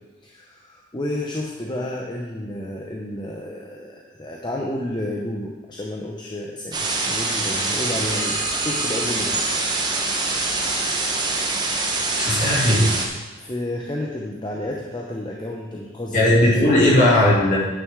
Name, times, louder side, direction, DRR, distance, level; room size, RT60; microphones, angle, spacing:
voice 1, 0.2-9.4 13.4-16.3, left 1 dB, 20° left, -1 dB, 0.7 m, -31 dB
sound 1, 6.7-13.1, right 3 dB, 20° right, 1.0 m, -24 dB
voice 2, 12.2-12.9 16.1-17.6, left 1 dB, 35° left, -5 dB, 2.4 m, -17 dB
9.6 x 9.4 x 3.7 m, 1.2 s
head